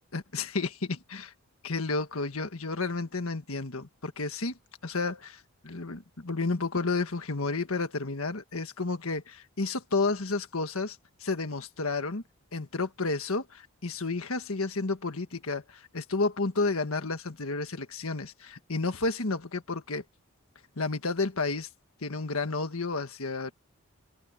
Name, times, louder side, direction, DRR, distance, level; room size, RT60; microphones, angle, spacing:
voice 1, 0.1-1.3 1.6-4.6 4.8-12.2 12.5-20.0 20.8-21.7 22.0-23.5, left 3 dB, 75° left, 1.5 m, -31 dB
head